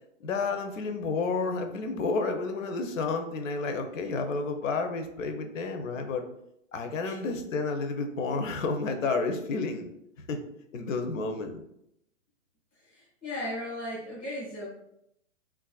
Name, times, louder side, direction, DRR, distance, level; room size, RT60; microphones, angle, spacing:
voice 1, 0.2-6.2 6.7-9.9 10.3-10.4 10.7-11.6, left 4 dB, 85° left, 6 dB, 0.6 m, -30 dB
voice 2, 12.9-14.7, left 1 dB, 10° left, -7 dB, 0.4 m, -36 dB
3.5 x 2.4 x 2.3 m, 0.77 s
hypercardioid pair, 165°, 38 cm